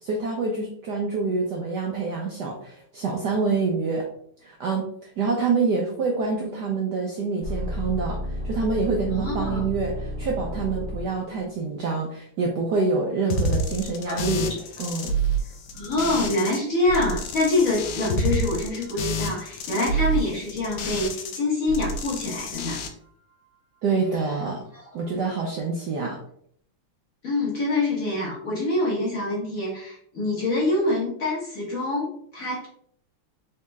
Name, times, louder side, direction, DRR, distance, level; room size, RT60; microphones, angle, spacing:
voice 1, 0.0-4.0 4.4-8.2 8.4-14.5 14.8-15.1 23.8-24.6 24.9-26.2, right 4 dB, 70° right, -1 dB, 1.0 m, -26 dB
sound 1, 7.4-11.5 17.0-18.5 18.8-18.9 25.0-25.1, equal, 45° right, 0.6 m, -33 dB
voice 2, 9.1-9.7 14.1-14.5 15.7-22.8 24.7-24.8 27.2-32.7, left 2 dB, 45° left, -5 dB, 1.3 m, -25 dB
sound 2, 13.3-16.6 16.9-21.4 21.7-22.9, right 1 dB, 75° left, 1.2 m, -28 dB
4.2 x 2.8 x 3.4 m, 0.65 s
omnidirectional pair, 2.4 m